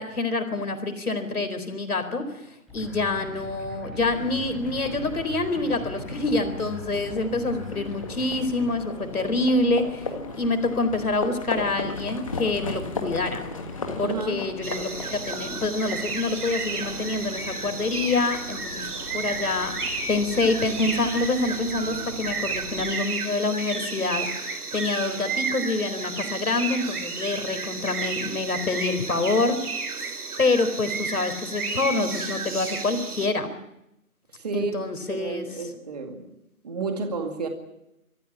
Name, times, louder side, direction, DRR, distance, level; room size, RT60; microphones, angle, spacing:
voice 1, 0.0-2.4 2.7-10.1 10.4-13.4 14.0-18.9 19.1-19.8 20.1-24.3 24.7-29.6 30.4-33.5 34.5-35.5, left 3 dB, 80° left, 9 dB, 4.2 m, -26 dB
sound 1, 2.7-8.7, left 2 dB, ahead, 3.5 m, -40 dB
Livestock farm animals working animals, 4.0-23.0, left 3 dB, 25° left, 1.7 m, -37 dB
voice 2, 14.0-14.4 34.4-34.8 35.1-36.3 36.6-37.5, right 4 dB, 25° right, 5 dB, 2.2 m, -31 dB
sound 2, 14.6-33.3, right 4 dB, 85° right, 3.1 m, -32 dB
26.5 x 15.0 x 8.7 m, 0.85 s
hypercardioid pair, 175°, 44 cm